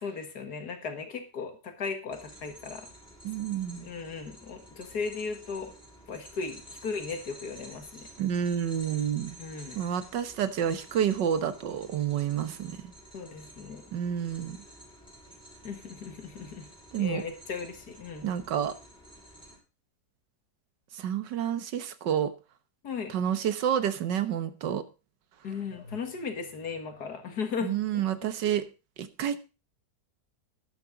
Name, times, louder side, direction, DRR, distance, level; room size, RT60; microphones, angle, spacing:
voice 1, 0.0-2.9 3.8-5.7 6.1-8.1 9.4-9.8 13.1-13.8 15.6-16.7 17.0-18.3 22.8-23.2 25.4-28.0, left 5 dB, 65° left, 6 dB, 2.3 m, -36 dB
sound 1, 2.1-19.6, equal, 5° left, 5.4 m, -51 dB
voice 2, 3.2-3.9 8.2-9.4 9.7-12.8 13.9-14.6 16.9-17.2 18.2-18.7 20.9-22.3 23.1-24.8 27.6-28.6 29.0-29.4, right 9 dB, 85° right, 12 dB, 1.7 m, -29 dB
13.0 x 10.5 x 3.9 m, 0.31 s
omnidirectional pair, 1.8 m